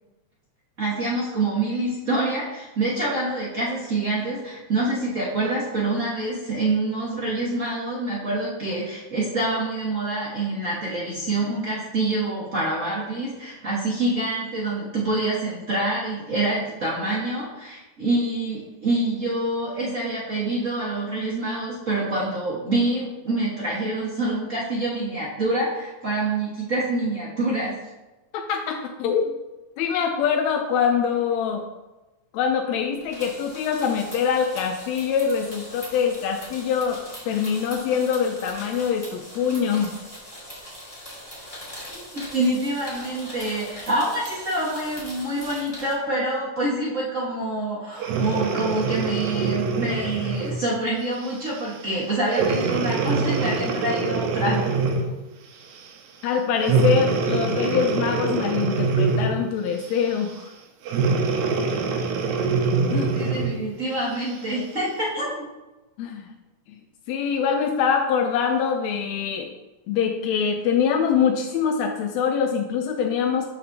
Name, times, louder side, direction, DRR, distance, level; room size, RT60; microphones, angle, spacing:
voice 1, 0.8-27.7 42.1-54.6 63.1-65.3, right 2 dB, 45° right, -8 dB, 1.0 m, -26 dB
voice 2, 28.3-29.3 29.8-31.6 32.3-39.9 56.2-60.5 62.9-63.1 66.0-66.3 67.1-69.5 69.9-73.5, left 7 dB, 80° left, 4 dB, 1.6 m, -24 dB
sound 1, 33.0-45.9, equal, 15° left, 1.4 m, -41 dB
Breathing, 48.0-50.6 51.2-51.5 52.3-55.2 56.6-59.5 60.9-63.6 64.2-64.3, right 4 dB, 75° right, 2.1 m, -24 dB
12.5 x 4.2 x 2.7 m, 1.1 s
omnidirectional pair, 3.6 m